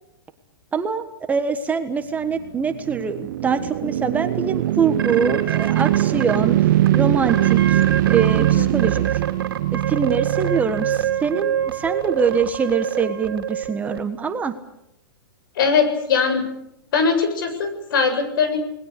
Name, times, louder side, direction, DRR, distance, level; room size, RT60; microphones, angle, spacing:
voice 1, 0.7-6.6 6.9-7.8 8.1-9.2 9.7-14.5, right 5 dB, 10° right, 8 dB, 1.4 m, -24 dB
sound 1, 2.4-11.6, right 14 dB, 55° right, 0.8 m, -21 dB
sound 2, 5.0-6.4 6.9-7.0 7.3-8.5 8.8-14.0, right 9 dB, 75° right, 2.8 m, -26 dB
voice 2, 8.3-8.7 15.5-16.5 16.9-18.6, left 5 dB, 65° left, 7 dB, 7.6 m, -21 dB
29.5 x 20.0 x 6.8 m, 0.83 s
hypercardioid pair, 145°, 12 cm